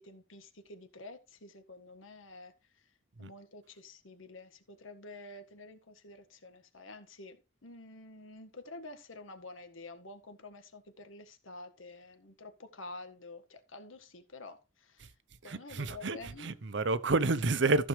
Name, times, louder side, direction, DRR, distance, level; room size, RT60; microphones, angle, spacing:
voice 1, 0.0-2.5 3.2-7.4 7.6-15.1 15.4-16.6, left 2 dB, 80° left, 1.7 m, -49 dB
voice 2, 15.4-17.9, right 3 dB, 60° right, 0.7 m, -30 dB
14.0 x 6.3 x 3.3 m
head